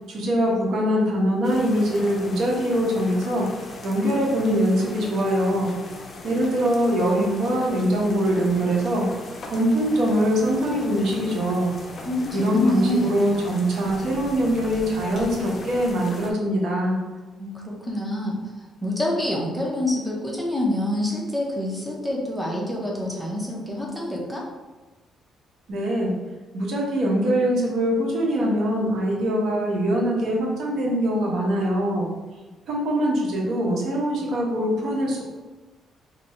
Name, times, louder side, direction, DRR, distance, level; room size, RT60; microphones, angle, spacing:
voice 1, 0.1-3.5 3.8-5.7 6.2-9.1 9.5-11.7 12.3-17.0 25.7-26.1 26.5-32.1 32.7-35.2, equal, 70° right, -2 dB, 0.9 m, -23 dB
sound 1, 1.4-16.3, left 2 dB, 40° left, 0.6 m, -39 dB
voice 2, 12.0-13.2 17.4-18.3 18.8-24.5, left 1 dB, ahead, -3 dB, 0.7 m, -26 dB
2.7 x 2.7 x 4.3 m, 1.2 s
cardioid pair, 110°, 0 cm